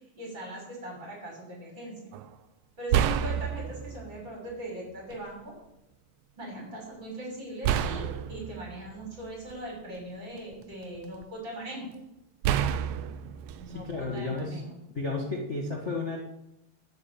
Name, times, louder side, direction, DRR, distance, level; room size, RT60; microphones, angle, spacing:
voice 1, 0.2-2.1 2.8-5.6 6.3-11.9 13.6-14.7, right 1 dB, 30° right, -3 dB, 7.1 m, -40 dB
sound 1, 2.1-2.3 2.9-4.2 5.1-5.2 7.6-9.8 10.4-11.2 12.4-14.5, right 9 dB, 85° right, 1.6 m, -29 dB
voice 2, 13.7-14.6 14.9-16.2, left 3 dB, 50° left, -1 dB, 0.8 m, -32 dB
11.0 x 7.5 x 8.9 m, 0.90 s
omnidirectional pair, 4.1 m